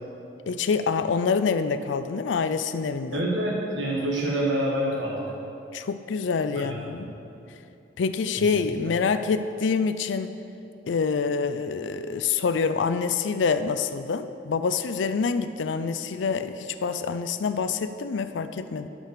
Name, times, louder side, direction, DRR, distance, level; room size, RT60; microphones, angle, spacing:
voice 1, 0.5-3.2 5.7-7.1 8.0-10.3 10.9-18.9, left 5 dB, 85° left, 11 dB, 0.4 m, -26 dB
voice 2, 3.1-5.2 6.6-7.1 8.4-8.5, right 1 dB, 80° right, -3 dB, 1.4 m, -27 dB
12.0 x 5.7 x 6.7 m, 2.8 s
head